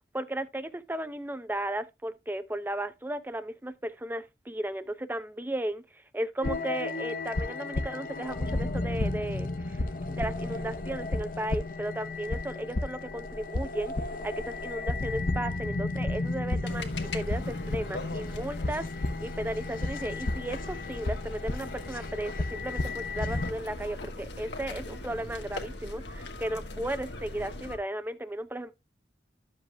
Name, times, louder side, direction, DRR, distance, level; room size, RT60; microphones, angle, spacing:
voice 1, 0.1-13.9 14.2-28.7, right 1 dB, 10° right, 0.6 m, -35 dB
sound 1, 6.4-23.5, left 2 dB, 55° left, 0.8 m, -33 dB
sound 2, 16.7-27.8, left 2 dB, 80° left, 1.6 m, -40 dB
11.5 x 7.6 x 2.3 m
head